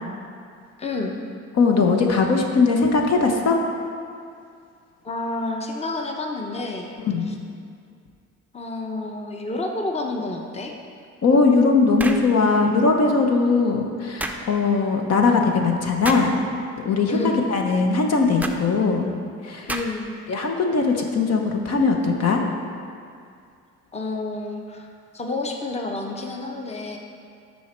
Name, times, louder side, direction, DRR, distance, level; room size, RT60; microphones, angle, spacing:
voice 1, 0.8-1.2 5.0-7.0 7.3-7.4 8.5-10.7 17.1-17.5 19.7-20.2 23.9-27.0, left 2 dB, 20° left, 1 dB, 0.9 m, -29 dB
voice 2, 1.6-3.6 7.0-7.3 11.2-16.4 16.8-19.1 19.4-19.7 20.3-22.4, left 4 dB, 55° left, 2 dB, 1.0 m, -20 dB
sound 1, 12.0-12.3 14.2-14.4 16.0-16.3 18.4-18.6 19.7-20.1, right 1 dB, 5° right, 0.5 m, -29 dB
12.5 x 4.3 x 4.4 m, 2.3 s
cardioid pair, 90°, 30 cm